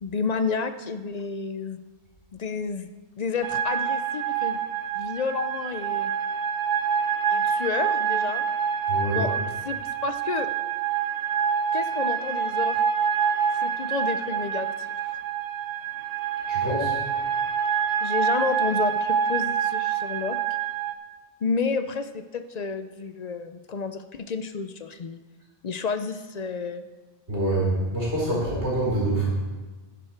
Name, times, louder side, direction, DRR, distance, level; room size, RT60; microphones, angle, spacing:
voice 1, 0.0-1.8 2.3-2.9 3.2-4.6 4.9-6.1 7.3-8.5 9.1-10.5 11.7-12.8 13.5-14.7 15.0-15.2 18.0-20.4 21.4-25.2 25.6-26.8, left 5 dB, 50° left, 10 dB, 0.5 m, -30 dB
sound 1, 3.4-20.9, right 7 dB, 90° right, 1.0 m, -26 dB
voice 2, 8.9-9.3 16.5-17.0 27.3-29.3, right 1 dB, 70° right, -5 dB, 4.7 m, -26 dB
11.0 x 10.5 x 4.4 m, 1.3 s
omnidirectional pair, 1.2 m